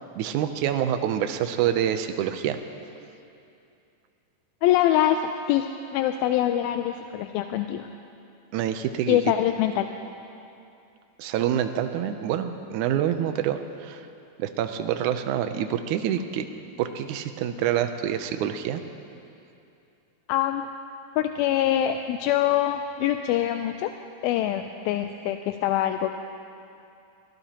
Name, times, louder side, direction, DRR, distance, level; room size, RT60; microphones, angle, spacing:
voice 1, 0.2-2.6 8.5-9.2 11.2-14.0 14.4-16.5 16.8-18.8, right 10 dB, 85° right, 8 dB, 1.8 m, -26 dB
voice 2, 4.6-7.9 9.1-9.9 20.3-20.7 21.2-23.9 24.2-26.2, left 12 dB, 85° left, 6 dB, 2.4 m, -24 dB
23.0 x 19.0 x 2.9 m, 2.7 s
omnidirectional pair, 4.3 m